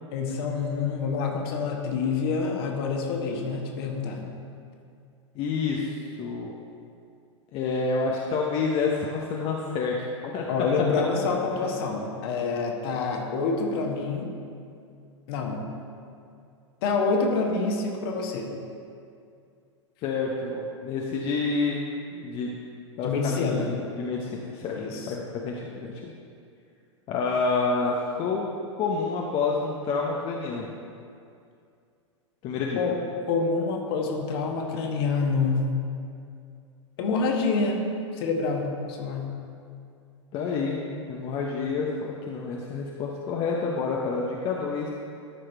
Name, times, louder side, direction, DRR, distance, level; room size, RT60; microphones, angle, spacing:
voice 1, 0.1-4.2 10.5-14.3 15.3-15.6 16.8-18.5 23.0-23.7 24.8-25.1 32.7-33.0 33.3-35.6 37.0-37.8 38.2-39.3, left 4 dB, 50° left, 1 dB, 1.5 m, -27 dB
voice 2, 5.3-6.6 7.5-10.0 10.2-10.5 20.0-21.8 22.1-22.6 23.0-24.8 25.0-26.2 27.1-28.5 28.8-30.8 32.4-32.8 40.3-44.9, left 4 dB, 35° left, -2 dB, 0.9 m, -28 dB
13.0 x 4.9 x 4.5 m, 2.4 s
figure-of-eight pair, 100°, 16 cm